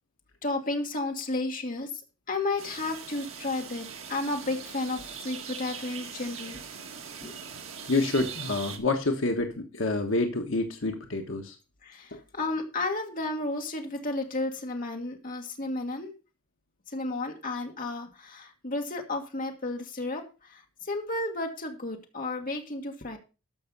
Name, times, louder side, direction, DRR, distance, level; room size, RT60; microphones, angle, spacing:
voice 1, 0.4-2.0 2.3-6.6 7.2-7.4 11.8-16.1 16.9-23.2, left 2 dB, 40° left, 3 dB, 1.7 m, -33 dB
sound 1, 2.6-8.8, right 7 dB, 70° right, 1.8 m, -41 dB
voice 2, 7.9-11.6 12.1-12.2, left 2 dB, 65° left, 4 dB, 1.3 m, -28 dB
13.0 x 5.7 x 5.3 m, 0.32 s
head